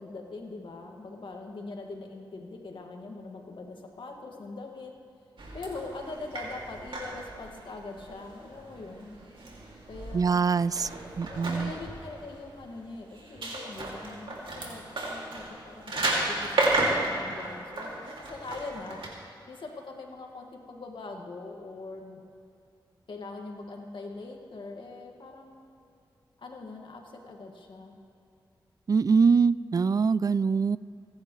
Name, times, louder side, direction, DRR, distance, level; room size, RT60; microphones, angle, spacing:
voice 1, 0.0-4.9 5.5-9.1 9.9-10.4 11.1-19.0 19.5-22.2 23.1-25.6 26.4-28.0, left 3 dB, 70° left, 1 dB, 2.1 m, -42 dB
sound 1, 5.4-19.1, right 2 dB, 75° right, 2.7 m, -34 dB
voice 2, 10.1-10.9 11.2-11.7 28.9-30.8, right 5 dB, 45° right, 18 dB, 0.4 m, -23 dB
27.0 x 10.5 x 3.3 m, 2.7 s
cardioid pair, 50°, 9 cm